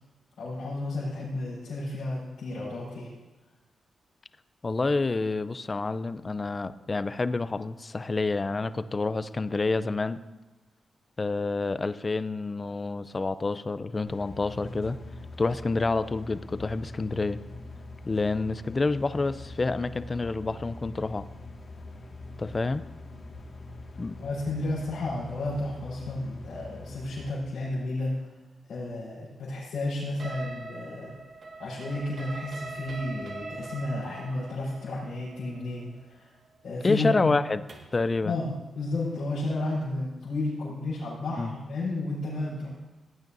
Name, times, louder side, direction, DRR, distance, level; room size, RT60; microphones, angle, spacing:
voice 1, 0.4-3.1 24.2-28.3 28.7-31.1 31.6-36.3 36.6-37.3 38.2-42.7, left 2 dB, 85° left, -11 dB, 4.3 m, -32 dB
voice 2, 4.6-10.2 11.2-15.0 15.4-17.4 18.1-21.3 22.4-22.9 24.0-24.2 36.8-37.6 37.9-38.4 41.4-41.5, left 3 dB, 40° left, 13 dB, 0.5 m, -28 dB
sound 1, 14.1-27.3, left 2 dB, 60° left, 2.1 m, -43 dB
sound 2, 30.2-38.0, right 3 dB, 65° right, 1.9 m, -42 dB
17.5 x 9.0 x 2.7 m, 1.1 s
cardioid pair, 55°, 0 cm